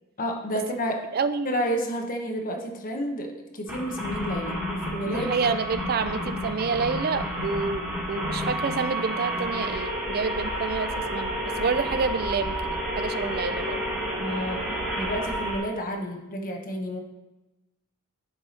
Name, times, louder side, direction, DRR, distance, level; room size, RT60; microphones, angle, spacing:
voice 1, 0.2-1.1 1.4-5.3 14.2-17.0, equal, 40° left, 3 dB, 1.0 m, -30 dB
voice 2, 1.1-1.6 5.0-13.8, right 4 dB, 45° right, 11 dB, 0.5 m, -28 dB
sound 1, 3.7-15.6, equal, 10° right, 3.0 m, -30 dB
9.8 x 4.7 x 4.3 m, 1.0 s
head